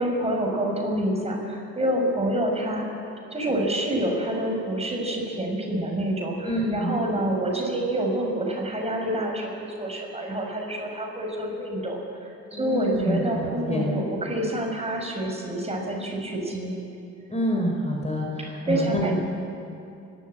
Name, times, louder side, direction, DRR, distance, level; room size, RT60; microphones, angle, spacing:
voice 1, 0.0-2.9 3.3-16.7 18.7-19.1, right 1 dB, 20° right, 0 dB, 5.9 m, -27 dB
voice 2, 6.4-6.9 12.5-13.9 17.3-19.1, equal, 20° left, 0 dB, 4.1 m, -27 dB
29.0 x 13.0 x 8.8 m, 2.6 s
cardioid pair, 90°, 30 cm